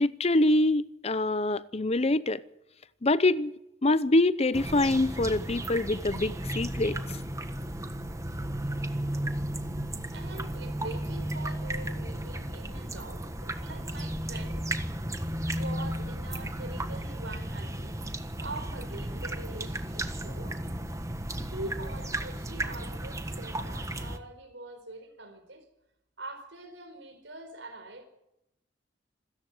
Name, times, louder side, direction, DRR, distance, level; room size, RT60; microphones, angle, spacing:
voice 1, 0.0-2.4 3.0-3.5 3.8-7.0, left 2 dB, 35° left, 0.7 m, -25 dB
sound 1, 4.5-24.2, right 1 dB, 15° right, 1.4 m, -34 dB
voice 2, 10.1-14.7 15.5-20.6 21.4-25.7 26.2-28.1, right 2 dB, 90° right, 4.6 m, -44 dB
26.5 x 14.0 x 7.8 m
head